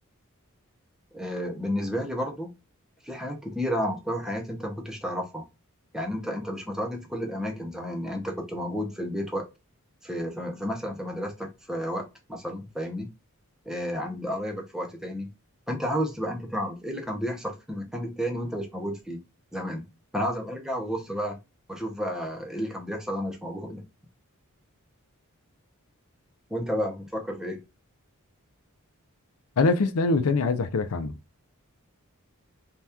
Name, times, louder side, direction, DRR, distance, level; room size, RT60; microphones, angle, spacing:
voice 1, 1.1-2.5 3.0-5.5 5.9-9.4 10.0-13.1 13.7-15.3 15.7-19.2 19.5-19.9 20.1-21.4 21.7-23.8 26.5-27.6, equal, 5° right, 0.6 m, -31 dB
voice 2, 29.6-31.1, left 3 dB, 80° left, 0.5 m, -23 dB
2.8 x 2.3 x 3.4 m
head